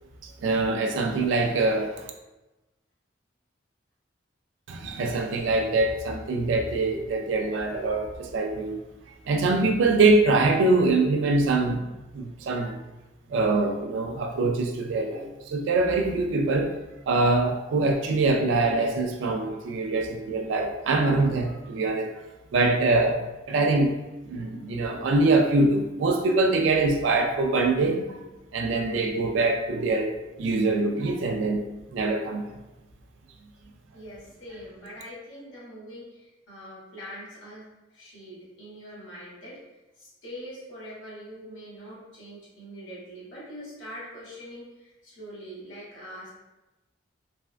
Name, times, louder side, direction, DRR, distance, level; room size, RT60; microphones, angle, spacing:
voice 1, 0.2-2.1 4.7-8.8 9.3-12.8 13.3-16.7 17.1-22.1 22.5-28.2 28.5-30.1 30.4-31.6 31.9-32.5, right 3 dB, 75° right, 2 dB, 0.3 m, -24 dB
voice 2, 33.9-46.3, equal, 80° left, -7 dB, 1.4 m, -43 dB
3.3 x 2.1 x 2.4 m, 1.1 s
head